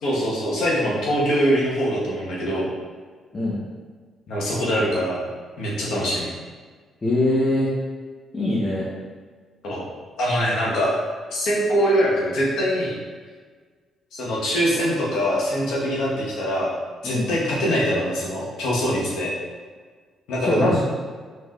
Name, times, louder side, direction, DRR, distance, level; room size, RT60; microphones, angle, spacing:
voice 1, 0.0-2.7 4.3-5.2 5.6-6.3 9.6-9.9 10.2-10.9 11.3-13.0 14.1-16.7 17.0-19.3 20.3-20.8, equal, 80° left, -5 dB, 1.2 m, -23 dB
voice 2, 7.0-7.7 8.3-8.8 17.0-17.3 20.5-20.8, left 1 dB, 30° left, -6 dB, 0.9 m, -22 dB
4.7 x 3.8 x 2.4 m, 1.5 s
cardioid pair, 90°, 0 cm